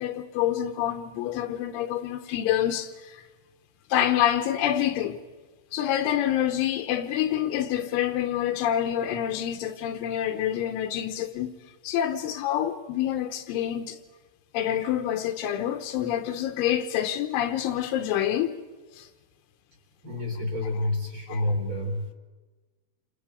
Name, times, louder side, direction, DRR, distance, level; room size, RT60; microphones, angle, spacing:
voice 1, 0.0-3.2 3.9-5.2 5.7-11.5 11.8-14.0 14.5-18.6 19.0-19.1 21.3-21.5, left 11 dB, 80° left, 3.3 m, -27 dB
voice 2, 20.0-22.1, left 1 dB, 30° right, 3.4 m, -29 dB
28.0 x 26.0 x 5.1 m
omnidirectional pair, 5.6 m